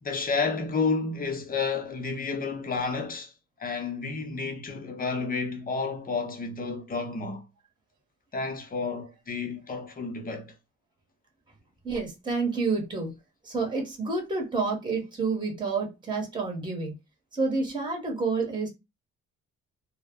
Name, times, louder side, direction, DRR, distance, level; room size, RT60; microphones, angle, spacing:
voice 1, 0.0-3.3 3.6-7.4 8.3-10.5, left 4 dB, 30° left, 0.7 m, -31 dB
voice 2, 11.8-13.1 13.4-16.9 17.3-18.7, right 4 dB, 15° right, 1.1 m, -29 dB
2.1 x 2.1 x 3.5 m
cardioid pair, 90°, 30 cm